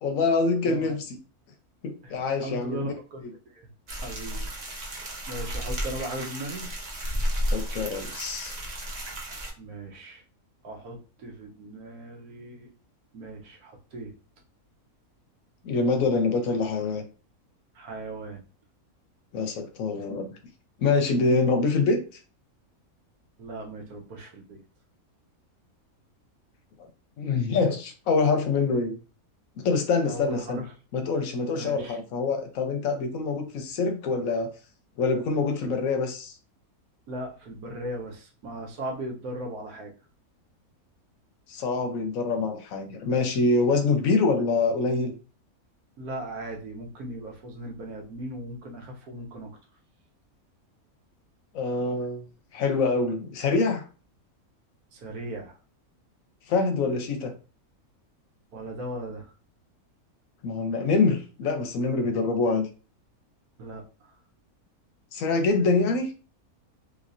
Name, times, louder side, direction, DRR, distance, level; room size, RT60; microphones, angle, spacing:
voice 1, 0.0-1.2 1.8-2.9 7.5-8.6 15.6-17.0 19.3-20.3 20.8-22.0 27.2-29.0 29.6-30.6 30.9-34.5 35.0-36.3 41.5-45.1 51.5-52.3 52.5-53.8 56.5-57.3 60.4-62.7 65.1-66.1, left 3 dB, 70° left, 6 dB, 1.0 m, -25 dB
voice 2, 0.6-1.0 2.0-3.2 3.5-3.7 4.0-4.5 5.3-6.7 9.6-10.2 10.6-12.7 13.1-14.1 17.7-18.4 23.4-24.6 30.0-30.7 31.5-32.0 37.1-39.9 46.0-49.5 54.9-55.5 58.5-59.3 63.6-63.8, right 1 dB, 80° right, -1 dB, 1.4 m, -37 dB
sound 1, 3.9-9.5, equal, 40° right, 0.6 m, -32 dB
3.3 x 3.1 x 2.5 m, 0.35 s
omnidirectional pair, 1.6 m